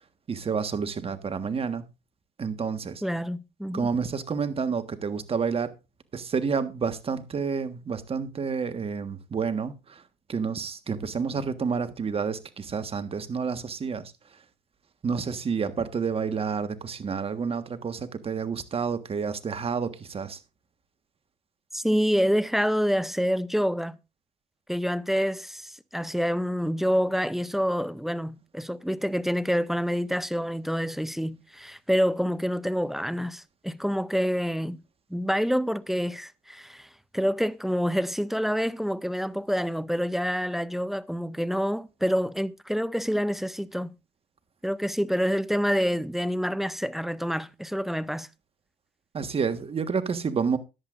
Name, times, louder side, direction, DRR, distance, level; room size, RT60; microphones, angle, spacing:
voice 1, 0.3-1.9 2.4-3.0 3.7-5.7 6.1-10.0 10.3-14.1 15.0-20.4 49.1-50.6, right 5 dB, 30° right, 1.5 m, -29 dB
voice 2, 3.0-3.9 21.7-24.0 24.7-34.8 35.1-44.0 44.6-48.3, equal, ahead, 0.5 m, -27 dB
14.0 x 10.5 x 2.6 m
supercardioid pair, 95°, 20 cm